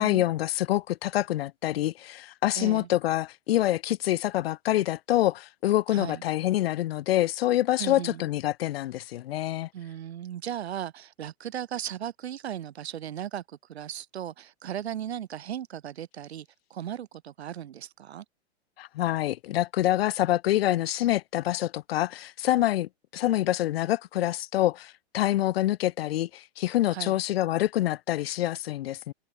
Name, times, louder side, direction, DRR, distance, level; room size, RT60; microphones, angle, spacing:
voice 1, 0.0-9.7 18.8-29.1, left 14 dB, 70° left, 0.5 m, -26 dB
voice 2, 2.5-2.9 5.9-6.2 7.8-8.2 9.7-18.2 26.9-27.2, right 10 dB, 85° right, 1.6 m, -37 dB
hypercardioid pair, 155°, 31 cm